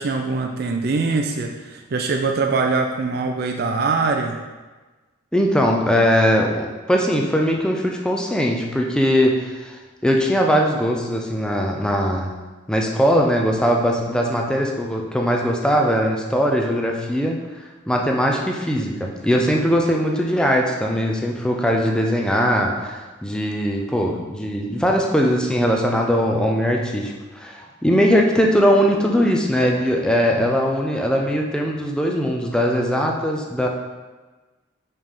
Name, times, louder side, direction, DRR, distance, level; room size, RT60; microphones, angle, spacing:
voice 1, 0.0-4.4, right 4 dB, 50° right, 4 dB, 0.4 m, -23 dB
voice 2, 5.3-9.8 10.0-12.3 12.7-17.4 17.9-33.7, equal, 5° left, 0 dB, 0.5 m, -20 dB
5.5 x 4.9 x 3.7 m, 1.2 s
head